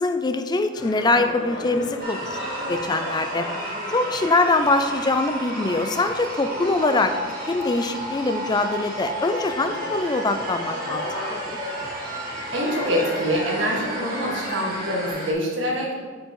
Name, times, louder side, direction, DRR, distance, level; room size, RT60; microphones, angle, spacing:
voice 1, 0.0-2.4 2.7-3.5 3.9-7.1 7.5-11.6, left 2 dB, 20° left, 8 dB, 0.4 m, -23 dB
sound 1, 0.7-15.1, left 1 dB, 85° left, 1.9 m, -36 dB
sound 2, 2.0-15.3, right 1 dB, 50° right, 1.8 m, -33 dB
voice 2, 12.5-16.1, equal, 65° right, -3 dB, 1.9 m, -25 dB
8.2 x 5.7 x 3.8 m, 1.5 s
head